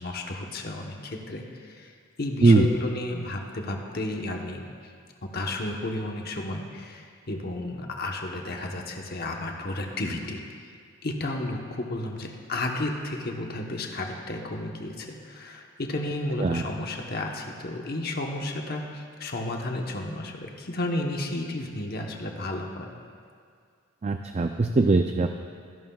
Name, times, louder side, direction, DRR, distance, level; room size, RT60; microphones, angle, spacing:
voice 1, 0.0-1.9 2.2-4.9 5.2-10.6 11.0-22.9, left 1 dB, 50° left, 1 dB, 1.1 m, -32 dB
voice 2, 24.0-25.3, right 3 dB, 35° right, 6 dB, 0.4 m, -20 dB
25.0 x 11.5 x 2.4 m, 2.2 s
head